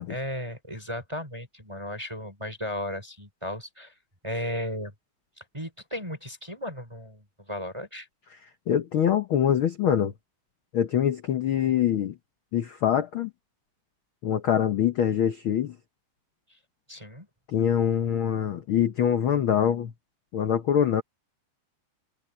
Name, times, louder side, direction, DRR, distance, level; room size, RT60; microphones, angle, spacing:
voice 1, 0.1-3.9 4.2-4.9 5.5-8.1 16.9-17.3, left 1 dB, 10° right, 5.3 m, -35 dB
voice 2, 8.7-10.1 10.7-12.1 12.5-13.3 14.2-15.7 17.5-19.9 20.3-21.0, left 9 dB, 75° left, 1.2 m, -24 dB
omnidirectional pair, 3.7 m